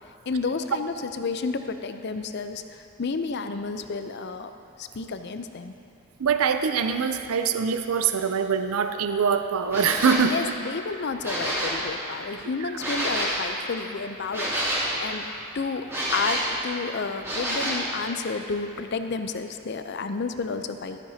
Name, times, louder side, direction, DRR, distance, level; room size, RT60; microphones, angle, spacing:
voice 1, 0.3-4.5 4.8-5.7 10.3-15.3 15.5-21.0, left 4 dB, 50° left, 8 dB, 0.5 m, -31 dB
voice 2, 6.2-10.4, right 6 dB, 75° right, 8 dB, 0.5 m, -23 dB
sound 1, 9.7-10.3 11.1-11.8 12.8-13.4 14.3-14.9 15.9-16.5 17.2-17.9, right 1 dB, 10° right, 2.4 m, -28 dB
13.5 x 13.5 x 2.8 m, 2.9 s
head